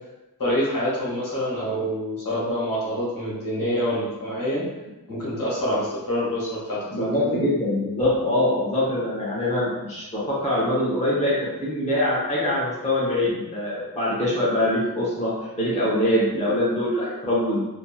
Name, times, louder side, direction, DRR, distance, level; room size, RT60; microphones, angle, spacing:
voice 1, 0.4-4.6 5.1-7.4, equal, 55° left, -8 dB, 1.3 m, -26 dB
voice 2, 6.9-17.6, left 1 dB, 15° left, -8 dB, 0.9 m, -23 dB
2.9 x 2.5 x 2.3 m, 1.0 s
wide cardioid pair, 70°, 38 cm